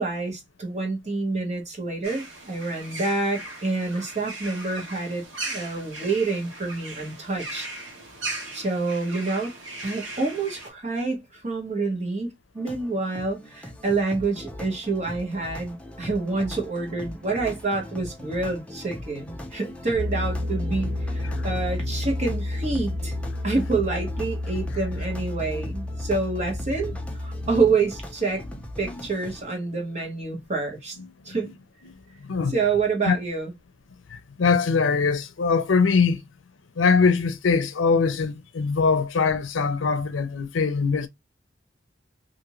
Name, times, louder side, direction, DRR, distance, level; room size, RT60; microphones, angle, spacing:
voice 1, 0.0-7.7 8.5-9.5 9.8-23.1 23.4-26.9 27.2-28.4 28.8-31.0 31.2-31.5 32.5-33.5, right 3 dB, 35° right, 1.2 m, -27 dB
sound 1, 2.0-10.7, right 2 dB, 80° right, 1.2 m, -38 dB
sound 2, 12.6-29.4, left 1 dB, 5° left, 0.5 m, -40 dB
sound 3, 19.9-27.6, left 1 dB, 65° right, 0.8 m, -30 dB
voice 2, 32.2-32.5 33.1-33.2 34.1-36.2 36.8-41.1, left 5 dB, 85° left, 0.5 m, -22 dB
2.6 x 2.5 x 2.9 m
head